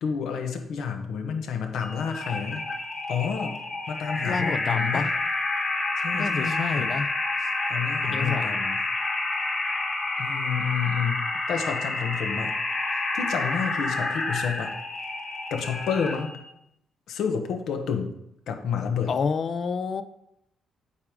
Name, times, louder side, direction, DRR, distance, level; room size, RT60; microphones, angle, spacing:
voice 1, 0.0-2.6 3.1-3.6 3.9-5.1 6.0-6.9 7.4-8.8 10.2-12.6 12.9-14.7 15.5-16.3 17.1-18.1 18.5-19.1, left 7 dB, 75° left, 5 dB, 1.2 m, -30 dB
sound 1, 1.8-16.4, left 2 dB, 35° left, 2.8 m, -29 dB
voice 2, 4.2-5.1 6.1-7.1 8.1-8.5 19.1-20.0, left 5 dB, 50° left, 12 dB, 0.6 m, -29 dB
8.4 x 4.8 x 5.1 m, 0.80 s
cardioid pair, 90°, 0 cm